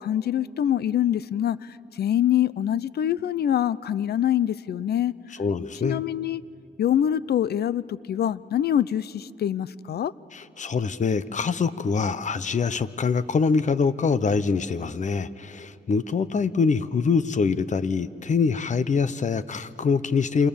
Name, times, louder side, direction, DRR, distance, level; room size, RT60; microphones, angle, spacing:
voice 1, 0.0-5.1 5.8-6.4 6.8-10.1, left 10 dB, 70° left, 19 dB, 0.6 m, -25 dB
voice 2, 5.4-6.0 10.3-20.5, left 5 dB, 45° left, 14 dB, 1.0 m, -24 dB
28.0 x 27.0 x 7.1 m, 2.7 s
cardioid pair, 90°, 17 cm